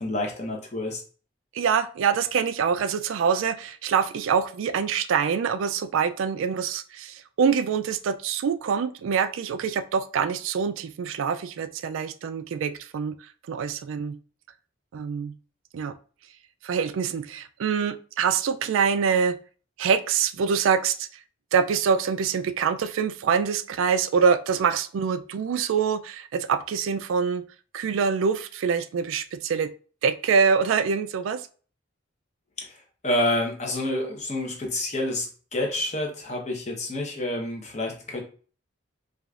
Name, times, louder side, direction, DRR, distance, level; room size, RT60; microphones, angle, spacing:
voice 1, 0.0-1.0 32.6-32.8 33.0-35.3 35.5-38.2, left 1 dB, 35° left, 1 dB, 0.8 m, -28 dB
voice 2, 1.5-13.1 13.5-14.2 14.9-15.3 15.7-16.0 16.6-19.4 19.8-21.2 21.5-27.4 27.7-29.7 30.0-31.4, right 6 dB, 85° right, 11 dB, 0.3 m, -25 dB
4.9 x 2.5 x 2.4 m, 0.40 s
head